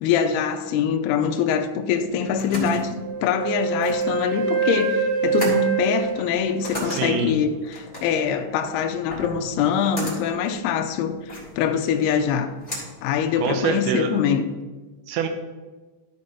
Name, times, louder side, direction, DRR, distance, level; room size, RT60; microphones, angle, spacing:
voice 1, 0.0-12.5 13.0-14.5, left 7 dB, 80° left, 6 dB, 2.4 m, -24 dB
sound 1, 1.9-13.9, left 1 dB, 15° left, 2.4 m, -36 dB
Wind instrument woodwind instrument, 3.0-7.2, right 5 dB, 75° right, 3.1 m, -25 dB
voice 2, 6.9-7.3 13.4-14.1 15.1-15.3, right 6 dB, 90° right, 6 dB, 3.0 m, -25 dB
13.0 x 5.1 x 4.1 m, 1.3 s
omnidirectional pair, 5.1 m